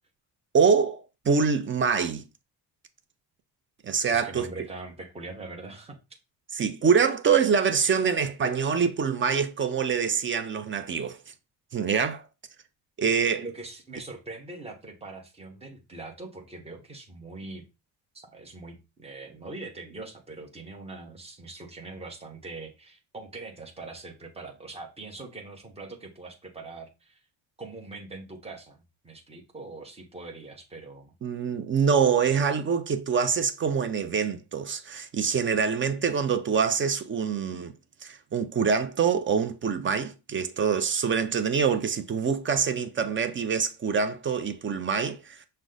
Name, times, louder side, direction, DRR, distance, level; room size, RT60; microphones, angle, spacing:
voice 1, 0.5-2.2 3.8-4.5 6.5-11.2 11.7-12.2 13.0-13.4 31.2-37.7 38.0-45.5, right 6 dB, 30° right, 0.5 m, -25 dB
voice 2, 4.0-6.0 13.4-17.6 18.1-27.2 27.6-31.1, right 3 dB, 15° right, 1.0 m, -42 dB
6.0 x 2.2 x 3.8 m
cardioid pair, 140°, 40 cm